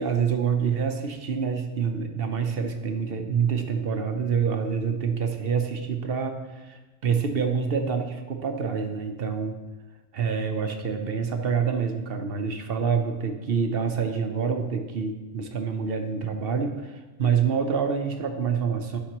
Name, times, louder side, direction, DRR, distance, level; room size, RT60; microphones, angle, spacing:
voice 1, 0.0-9.6 10.1-19.0, right 6 dB, 55° right, 5 dB, 0.8 m, -27 dB
11.5 x 5.8 x 3.0 m, 1.2 s
omnidirectional pair, 1.4 m